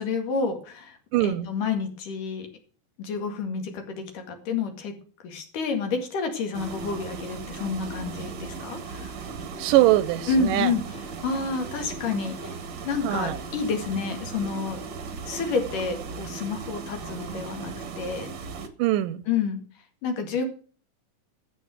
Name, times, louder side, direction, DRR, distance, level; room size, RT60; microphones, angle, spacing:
voice 1, 0.0-2.5 3.0-5.0 5.2-9.1 10.3-14.8 15.2-18.3 19.3-19.6 20.0-20.5, left 5 dB, 75° left, 3.7 m, -29 dB
voice 2, 1.1-1.5 9.6-10.7 13.0-13.4 18.8-19.2, right 15 dB, 85° right, 2.3 m, -22 dB
sound 1, 6.5-18.7, right 4 dB, 55° right, 1.4 m, -37 dB
13.5 x 7.5 x 6.4 m
omnidirectional pair, 3.8 m